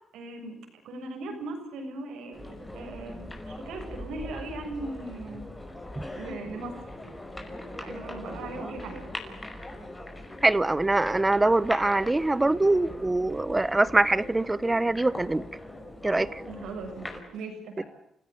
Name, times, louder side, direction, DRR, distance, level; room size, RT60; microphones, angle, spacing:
voice 1, 0.1-0.6 0.8-5.4 6.1-6.8 7.8-9.1 16.4-17.1 17.3-17.8, right 2 dB, 90° right, 4 dB, 7.1 m, -38 dB
sound 1, 2.3-17.2, left 1 dB, 15° left, 5.5 m, -41 dB
voice 2, 10.4-15.4 16.0-16.4, right 2 dB, 15° right, 18 dB, 1.1 m, -23 dB
29.0 x 16.5 x 8.2 m, 0.80 s
cardioid pair, 95°, 0 cm